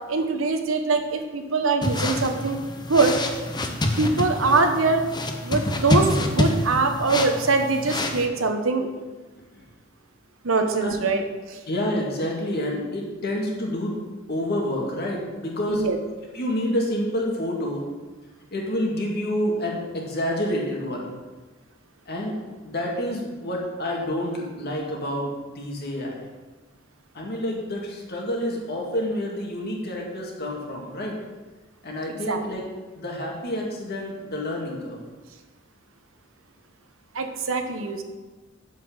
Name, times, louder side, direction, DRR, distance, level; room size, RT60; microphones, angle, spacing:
voice 1, 0.1-3.2 4.0-5.0 5.4-8.9 10.4-11.6 15.7-16.0 32.3-32.4 37.1-38.0, right 3 dB, 85° right, 6 dB, 1.0 m, -23 dB
sound 1, 1.8-8.3, left 1 dB, 20° left, 0.8 m, -27 dB
voice 2, 11.7-14.0 14.3-15.8 16.3-17.8 18.5-21.1 22.1-22.4 22.6-26.2 27.1-31.2 31.8-32.7 33.0-35.0, left 1 dB, 55° left, -1 dB, 2.1 m, -28 dB
7.5 x 5.9 x 7.2 m, 1.3 s
head